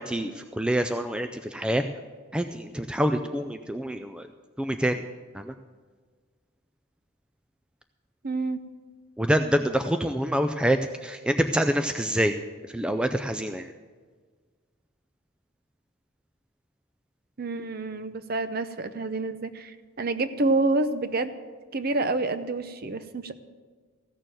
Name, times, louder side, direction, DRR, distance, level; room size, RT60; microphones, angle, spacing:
voice 1, 0.0-1.8 2.3-4.3 4.6-5.0 5.3-5.5 9.2-12.3 12.7-13.7, equal, 5° right, 7 dB, 0.3 m, -26 dB
voice 2, 8.2-8.6 17.4-21.3 21.7-23.3, right 2 dB, 45° right, 11 dB, 0.7 m, -28 dB
15.0 x 6.8 x 7.6 m, 1.5 s
head